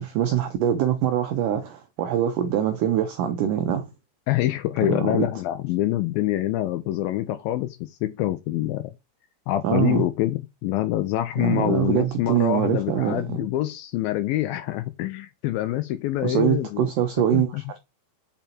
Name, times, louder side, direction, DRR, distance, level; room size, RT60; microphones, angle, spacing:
voice 1, 0.0-3.8 4.9-5.3 9.6-10.0 11.4-13.5 16.2-17.8, right 10 dB, 85° right, 1.8 m, -24 dB
voice 2, 4.3-8.9 9.5-16.9 17.3-17.6, left 14 dB, 85° left, 2.1 m, -25 dB
5.9 x 5.3 x 4.4 m
omnidirectional pair, 4.7 m